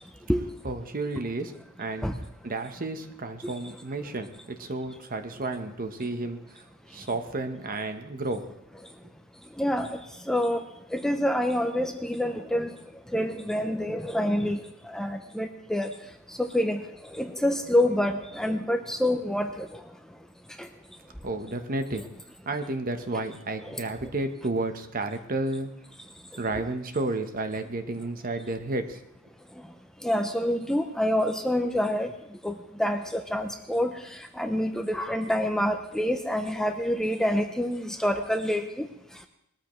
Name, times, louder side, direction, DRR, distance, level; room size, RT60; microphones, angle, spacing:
voice 1, 0.6-1.5 1.8-2.1 2.4-6.6 6.9-8.5 21.2-22.1 22.4-25.7 26.4-29.0, right 2 dB, 40° right, 7 dB, 1.0 m, -32 dB
voice 2, 9.6-10.6 10.9-12.8 13.1-15.9 16.3-16.8 17.1-19.8 20.6-20.7 23.7-23.8 30.0-32.1 32.4-38.9, left 1 dB, 5° left, 6 dB, 0.6 m, -27 dB
20.5 x 13.0 x 3.2 m, 0.81 s
head